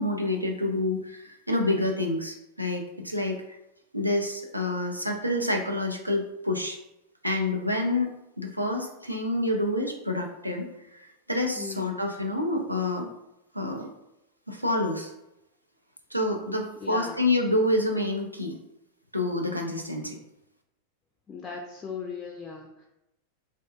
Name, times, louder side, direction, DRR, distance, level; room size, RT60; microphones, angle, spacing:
voice 1, 0.0-3.6 3.9-6.8 7.2-8.1 8.4-10.7 10.9-13.1 13.5-13.9 14.5-15.1 16.1-18.5 19.1-20.2, left 1 dB, 85° right, 2 dB, 0.3 m, -28 dB
voice 2, 11.6-12.0 16.8-17.2 21.3-22.9, left 5 dB, 20° left, 0 dB, 0.3 m, -38 dB
2.5 x 2.1 x 2.3 m, 0.86 s
figure-of-eight pair, 90°, 0 cm